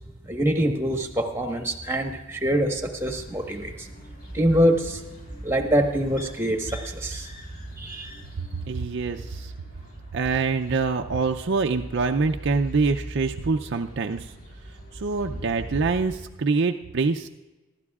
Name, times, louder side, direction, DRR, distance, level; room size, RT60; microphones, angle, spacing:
voice 1, 0.3-3.9 4.3-5.0 5.4-7.3 7.8-8.1, equal, 10° right, 4 dB, 1.3 m, -24 dB
sound 1, 3.1-16.2, right 1 dB, 40° left, 3.8 m, -41 dB
voice 2, 8.7-9.5 10.1-14.3 15.0-17.3, right 4 dB, 55° right, 4 dB, 0.5 m, -25 dB
24.5 x 12.0 x 2.4 m, 1.1 s
head